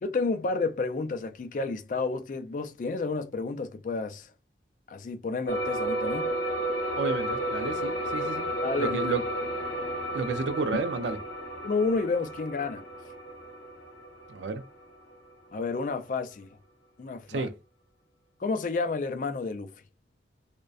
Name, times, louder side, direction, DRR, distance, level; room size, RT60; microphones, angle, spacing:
voice 1, 0.0-4.3 4.9-6.3 8.6-9.0 10.7-10.8 11.6-12.8 15.5-16.5 17.0-17.5 18.4-19.7, left 3 dB, 45° left, 0.3 m, -30 dB
sound 1, 5.5-15.3, right 1 dB, 75° left, 0.7 m, -32 dB
voice 2, 7.0-8.5 8.8-9.3 10.1-11.2 14.3-14.6 17.3-17.5, right 4 dB, 90° right, 0.4 m, -31 dB
2.5 x 2.1 x 2.3 m
head